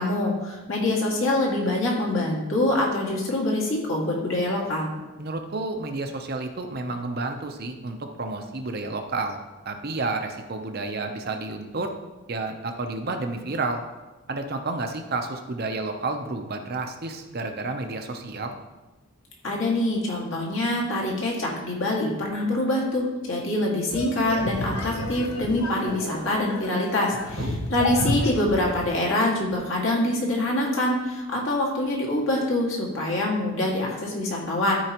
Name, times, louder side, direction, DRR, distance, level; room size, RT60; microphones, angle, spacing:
voice 1, 0.0-4.9 19.4-34.7, left 1 dB, 60° left, -3 dB, 2.0 m, -25 dB
voice 2, 5.2-9.4 9.6-11.9 12.3-13.8 14.3-18.5 27.4-27.6, right 3 dB, 45° right, 5 dB, 0.7 m, -30 dB
sound 1, 23.9-28.9, left 2 dB, 80° left, 1.0 m, -31 dB
13.0 x 4.7 x 3.0 m, 1.1 s
head